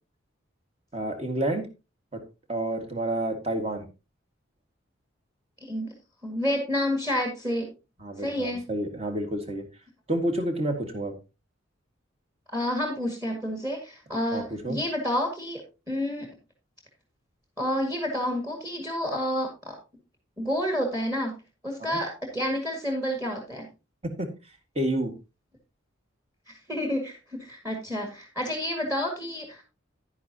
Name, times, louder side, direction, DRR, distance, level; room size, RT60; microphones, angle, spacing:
voice 1, 0.9-1.7 2.1-2.2 2.5-3.9 8.0-9.6 10.1-11.1 14.3-14.8 21.9-22.0 24.0-24.3 24.8-25.1, right 1 dB, 30° right, 5 dB, 1.8 m, -29 dB
voice 2, 6.2-7.7 8.2-8.6 12.5-15.6 15.9-16.3 17.6-19.8 20.4-21.4 21.6-23.7 26.7-29.6, equal, 15° right, 2 dB, 1.9 m, -29 dB
10.5 x 10.0 x 2.8 m, 0.28 s
head